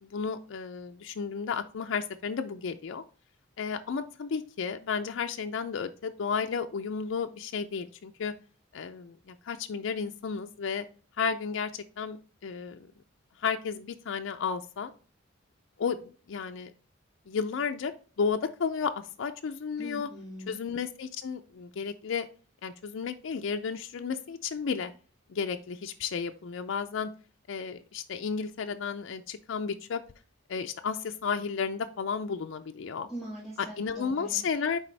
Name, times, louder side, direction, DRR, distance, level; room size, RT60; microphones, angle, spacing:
voice 1, 0.0-3.0 3.6-8.3 8.7-10.9 11.2-12.2 12.4-12.9 13.4-14.9 15.8-16.7 17.3-17.9 18.2-20.1 20.5-22.3 22.6-24.9 25.3-27.1 27.5-30.0 30.5-33.1 33.8-34.8, left 6 dB, 70° left, 6 dB, 0.4 m, -33 dB
voice 2, 19.8-20.6 33.1-34.5, right 1 dB, ahead, -8 dB, 1.7 m, -42 dB
9.0 x 3.4 x 3.2 m, 0.38 s
head